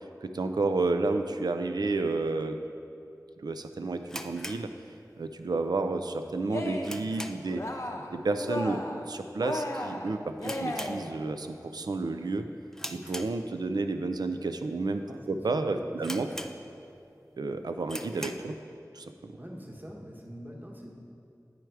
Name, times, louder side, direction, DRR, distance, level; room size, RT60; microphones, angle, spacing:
voice 1, 0.2-2.6 3.4-4.7 5.2-7.6 8.1-12.4 12.9-16.3 17.4-18.5 18.9-19.3, right 3 dB, 90° right, 7 dB, 0.4 m, -31 dB
sound 1, 4.0-5.4 5.7-5.8 6.3-7.7 7.9-8.2 8.5-8.6 9.3-9.6 9.9-10.0 10.4-11.5 11.9-12.2 12.7-13.8 14.4-14.5 15.1-15.2 15.5-15.6 16.0-17.0 17.3-17.4 17.8-18.5, equal, 5° left, 0.4 m, -41 dB
Cheering, 6.4-7.1 7.4-8.1 8.4-9.1 9.4-11.2, left 1 dB, 45° left, 0.7 m, -35 dB
voice 2, 15.1-16.4 19.4-20.9, equal, 25° right, 0 dB, 1.0 m, -45 dB
9.1 x 4.7 x 4.6 m, 2.6 s
wide cardioid pair, 40°, 7 cm